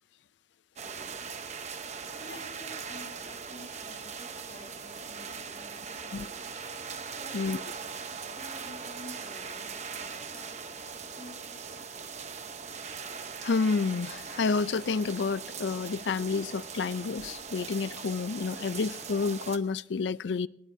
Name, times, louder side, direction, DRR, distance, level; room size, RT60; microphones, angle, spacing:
voice 1, 0.8-1.2 2.1-6.4 7.1-7.7 8.2-12.3, left 1 dB, 30° left, 2.7 m, -51 dB
sound 1, 0.8-19.6, right 5 dB, 40° right, 0.9 m, -40 dB
voice 2, 13.4-20.5, left 4 dB, 80° left, 0.4 m, -29 dB
21.0 x 18.5 x 2.7 m
head